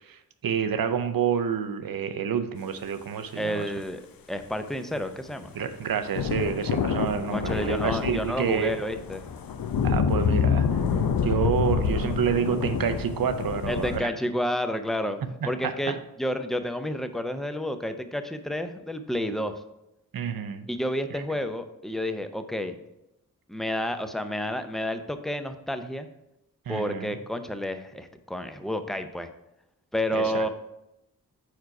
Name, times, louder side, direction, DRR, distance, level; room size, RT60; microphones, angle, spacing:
voice 1, 0.1-3.6 5.5-8.8 9.8-10.7 11.2-14.1 15.4-16.0 20.1-20.7 21.1-21.2 26.7-27.1 30.1-30.5, right 7 dB, 65° right, 10 dB, 0.6 m, -28 dB
voice 2, 3.3-4.0 4.3-5.5 7.3-9.2 13.7-15.2 15.4-19.6 20.7-22.7 23.5-26.1 26.7-29.3 29.9-30.5, equal, ahead, 8 dB, 0.5 m, -30 dB
sound 1, 5.0-14.0, left 6 dB, 70° left, 0.6 m, -27 dB
4.7 x 4.6 x 4.8 m, 0.87 s
cardioid pair, 40°, 37 cm